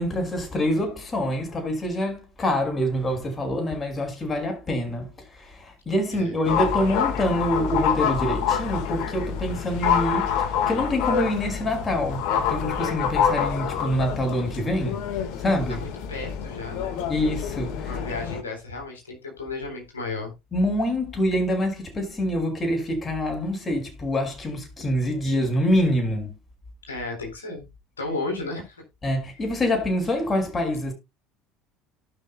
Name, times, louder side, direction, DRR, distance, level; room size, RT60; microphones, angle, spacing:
voice 1, 0.0-5.1 5.4-15.0 15.4-15.8 17.1-17.9 20.5-26.3 29.0-30.9, left 1 dB, 30° left, 5.2 m, -26 dB
sound 1, 6.4-18.4, left 8 dB, 65° left, 1.6 m, -27 dB
voice 2, 15.7-17.0 17.8-20.3 26.9-27.7 28.0-28.8, left 3 dB, 90° left, 3.7 m, -34 dB
18.5 x 6.2 x 2.2 m
hypercardioid pair, 70°, 0 cm